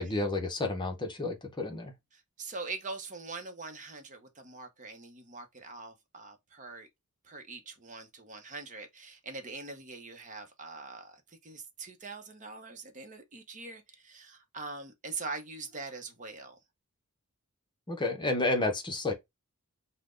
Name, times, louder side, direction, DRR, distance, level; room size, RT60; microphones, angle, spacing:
voice 1, 0.0-1.9 17.9-19.1, left 2 dB, 20° left, 0.8 m, -31 dB
voice 2, 2.1-6.9 7.2-16.6, right 3 dB, 35° right, 0.8 m, -43 dB
5.7 x 2.2 x 3.7 m
head